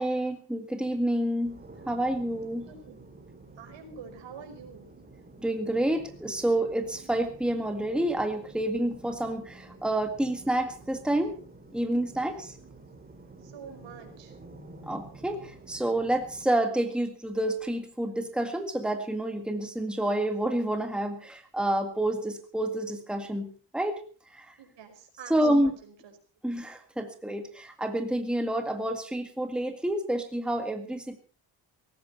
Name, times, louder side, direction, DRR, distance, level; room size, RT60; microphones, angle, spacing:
voice 1, 0.0-2.7 5.4-11.4 11.7-12.6 14.9-24.0 24.3-24.5 25.3-25.7 26.4-31.2, right 1 dB, ahead, 6 dB, 1.9 m, -29 dB
sound 1, 1.4-16.4, right 2 dB, 20° right, 4.0 m, -50 dB
voice 2, 2.6-3.0 3.6-4.9 13.4-14.3 24.6-26.2, right 6 dB, 75° right, 5 dB, 5.3 m, -47 dB
18.0 x 15.5 x 4.5 m, 0.39 s
cardioid pair, 130°, 44 cm